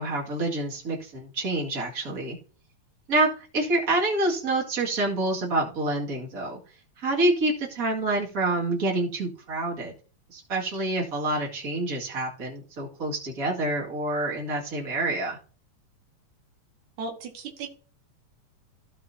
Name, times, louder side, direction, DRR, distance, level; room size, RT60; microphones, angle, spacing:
voice 1, 0.0-2.4 3.1-6.6 7.0-9.9 10.3-15.4, right 2 dB, 30° right, -3 dB, 2.2 m, -27 dB
voice 2, 17.0-17.7, right 4 dB, 80° right, 2 dB, 2.8 m, -35 dB
15.5 x 5.5 x 2.8 m, 0.41 s
omnidirectional pair, 3.3 m